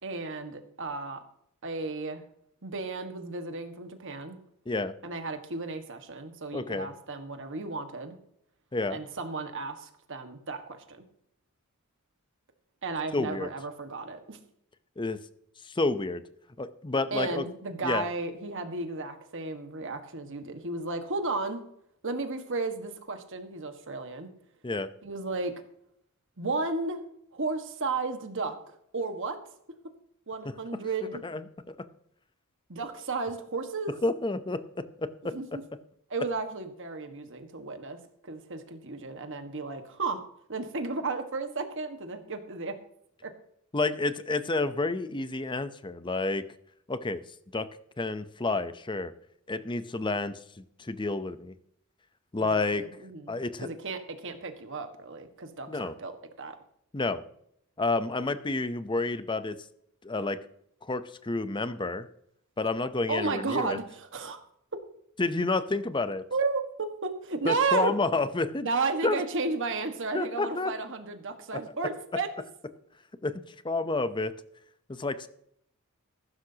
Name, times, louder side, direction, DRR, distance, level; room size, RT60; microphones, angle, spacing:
voice 1, 0.0-1.2 1.6-2.2 2.6-4.4 5.0-8.2 8.9-11.0 12.8-14.4 17.1-21.6 22.0-24.3 25.0-25.5 26.4-27.0 27.3-28.5 28.9-29.4 30.3-31.2 32.7-33.9 35.3-35.6 36.1-38.0 38.2-40.2 40.5-42.7 43.2-43.3 52.4-53.3 53.6-56.5 63.1-64.4 66.3-66.6 67.0-67.9 68.6-72.3, right 3 dB, 60° right, 7 dB, 1.6 m, -33 dB
voice 2, 6.5-6.9 8.7-9.0 13.1-13.5 15.0-15.2 15.6-16.2 16.6-17.4 17.8-18.0 24.6-24.9 31.2-31.7 34.0-35.3 43.7-46.4 46.9-47.2 47.5-47.7 48.0-49.1 49.5-51.5 52.3-52.8 53.3-53.7 55.7-55.9 56.9-57.2 57.8-59.6 60.0-60.4 60.8-62.1 62.6-63.8 65.2-66.2 67.4-68.7 69.0-69.2 70.1-70.7 73.2-74.3 74.9-75.3, left 3 dB, 20° left, 12 dB, 0.7 m, -30 dB
15.0 x 12.5 x 2.9 m, 0.71 s
head